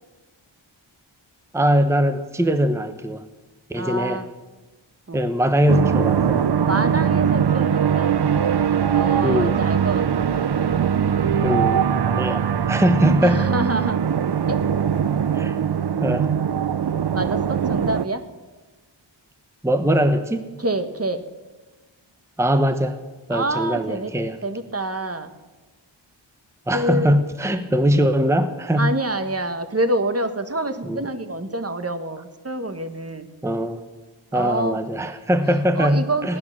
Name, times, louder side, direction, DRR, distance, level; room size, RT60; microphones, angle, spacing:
voice 1, 1.5-3.2 3.7-4.2 5.1-6.4 9.2-9.6 11.4-13.5 15.3-15.6 16.0-16.3 19.6-20.5 22.4-23.0 23.3-24.4 26.7-29.0 30.8-31.0 33.4-33.8 34.3-36.4, equal, 5° right, 9 dB, 1.0 m, -21 dB
voice 2, 3.8-4.3 5.1-5.2 6.6-8.1 8.9-10.3 13.2-14.0 14.5-14.6 17.1-18.2 20.6-21.2 23.3-24.1 24.4-25.3 26.7-27.2 28.8-33.3 34.3-34.8 35.7-36.4, right 1 dB, 30° right, 9 dB, 1.4 m, -26 dB
sound 1, 5.7-18.0, right 8 dB, 55° right, 0.6 m, -21 dB
18.0 x 11.0 x 7.4 m, 1.2 s
wide cardioid pair, 40°, 48 cm